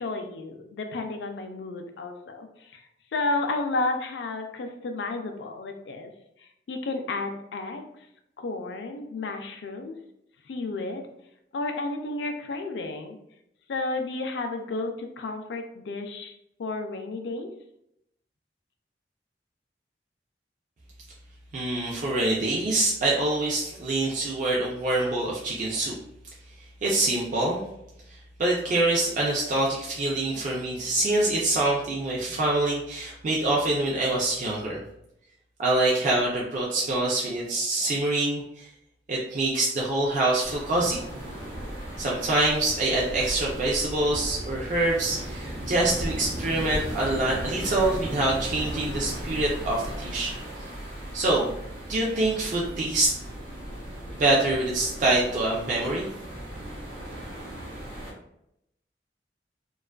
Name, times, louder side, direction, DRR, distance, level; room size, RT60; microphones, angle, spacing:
voice 1, 0.0-2.8 3.1-6.1 6.7-7.9 8.4-10.0 10.5-11.0 11.5-13.2 13.7-16.3 16.6-17.5, left 3 dB, 70° left, 5 dB, 0.4 m, -32 dB
voice 2, 21.5-25.9 26.8-27.6 28.1-34.8 35.6-38.7 39.1-41.0 42.0-50.3 51.1-51.5 51.9-53.1 54.2-56.1, right 2 dB, 45° right, -4 dB, 0.4 m, -25 dB
sound 1, 40.4-58.1, right 1 dB, 80° right, 0.7 m, -36 dB
2.4 x 2.3 x 2.2 m, 0.80 s
head